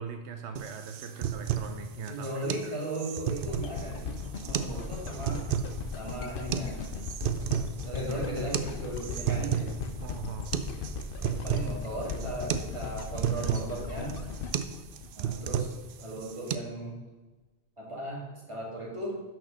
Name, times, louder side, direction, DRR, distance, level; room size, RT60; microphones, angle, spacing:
voice 1, 0.0-2.7 4.7-4.9 10.0-10.5, right 5 dB, 85° right, 6 dB, 1.0 m, -41 dB
sound 1, 0.5-16.5, right 8 dB, 60° right, 0.7 m, -33 dB
voice 2, 2.1-5.5 6.0-6.8 7.8-9.7 11.2-14.2 15.2-15.7 16.0-17.0 17.8-19.2, right 1 dB, 25° right, -2 dB, 2.1 m, -36 dB
sound 2, 3.5-15.7 16.2-16.3, left 4 dB, 60° left, 0.7 m, -38 dB
6.2 x 6.1 x 6.3 m, 1.2 s
omnidirectional pair, 1.1 m